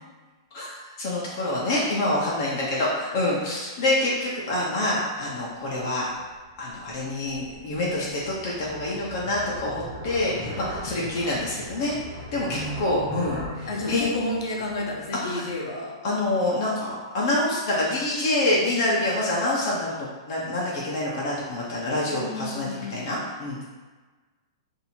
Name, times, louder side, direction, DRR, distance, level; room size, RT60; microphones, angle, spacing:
voice 1, 0.5-6.1 6.6-12.0 12.3-14.1 15.2-15.4 16.0-23.6, left 2 dB, 45° left, -5 dB, 0.7 m, -26 dB
sound 1, 6.2-15.5, equal, 5° left, 1.0 m, -40 dB
voice 2, 12.5-15.9 22.1-23.1, left 1 dB, 75° left, -1 dB, 0.9 m, -32 dB
2.8 x 2.6 x 4.3 m, 1.3 s
hypercardioid pair, 160°, 3 cm